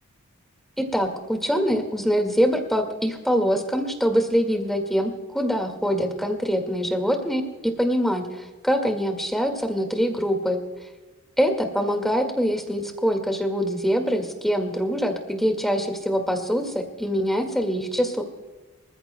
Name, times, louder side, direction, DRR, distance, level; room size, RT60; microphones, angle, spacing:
voice 1, 0.8-10.6 11.4-18.2, equal, ahead, 4 dB, 1.8 m, -24 dB
26.5 x 14.5 x 2.2 m, 1.3 s
head